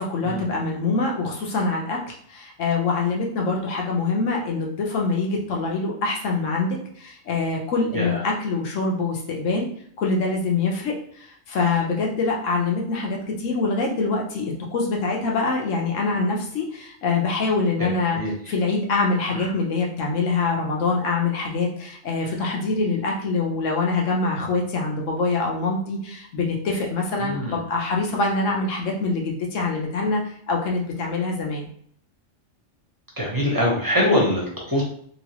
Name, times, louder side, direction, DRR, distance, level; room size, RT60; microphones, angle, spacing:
voice 1, 0.0-9.7 10.0-18.2 18.5-31.7, left 3 dB, 75° left, -1 dB, 1.2 m, -24 dB
voice 2, 17.8-18.3 19.3-19.5 27.2-27.6 33.2-34.8, left 1 dB, 20° right, -3 dB, 1.0 m, -23 dB
3.0 x 2.7 x 2.9 m, 0.62 s
omnidirectional pair, 1.3 m